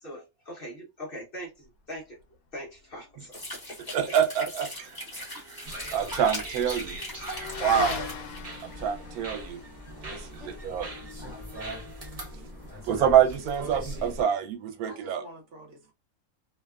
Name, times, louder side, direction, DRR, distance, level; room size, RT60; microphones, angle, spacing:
voice 1, 0.0-2.2 2.5-4.0, equal, 50° left, 0.8 m, -42 dB
sound 1, 3.3-8.7, equal, 15° left, 1.2 m, -40 dB
voice 2, 3.9-7.0 7.6-8.1 8.8-9.6 10.0-10.9 12.8-15.2, right 9 dB, 85° right, 1.1 m, -26 dB
Motorcycle / Accelerating revving vroom, 4.7-13.5, left 6 dB, 80° left, 1.0 m, -42 dB
sound 2, 5.6-14.2, right 1 dB, 30° right, 0.7 m, -40 dB
voice 3, 14.9-15.9, equal, 60° right, 1.0 m, -47 dB
2.7 x 2.2 x 2.3 m
omnidirectional pair, 1.5 m